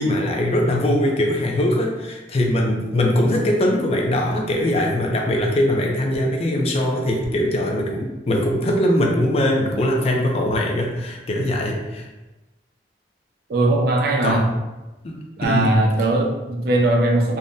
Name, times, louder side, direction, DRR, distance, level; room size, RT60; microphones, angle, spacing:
voice 1, 0.0-12.1 14.2-14.5 15.0-15.8, left 1 dB, 35° left, 0 dB, 0.4 m, -21 dB
voice 2, 13.5-14.5 15.4-17.4, right 2 dB, 55° right, 1 dB, 0.4 m, -20 dB
3.5 x 2.1 x 2.5 m, 1.1 s
head